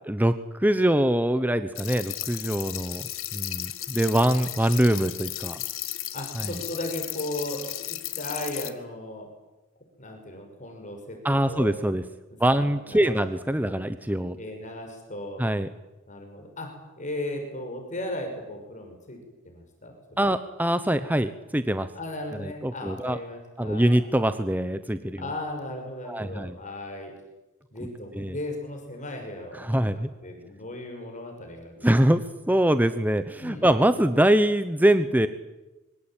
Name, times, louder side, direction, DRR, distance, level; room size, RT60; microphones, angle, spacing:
voice 1, 0.6-5.6 11.2-12.0 12.4-14.4 15.4-15.7 20.2-21.9 22.4-23.2 23.6-25.2 26.1-26.5 28.2-28.3 29.6-30.1 31.8-32.2 32.5-35.3, right 1 dB, 10° right, 11 dB, 0.9 m, -23 dB
sound 1, 1.7-8.7, left 14 dB, 80° left, 2.0 m, -35 dB
voice 2, 6.1-9.3 10.0-11.2 11.5-11.7 12.5-13.1 13.6-13.8 14.4-15.4 16.1-16.7 17.0-19.2 19.4-20.4 21.9-24.0 25.2-27.1 27.7-31.9 33.4-33.7, left 1 dB, 35° left, 3 dB, 6.0 m, -36 dB
25.5 x 23.5 x 9.1 m, 1.1 s
head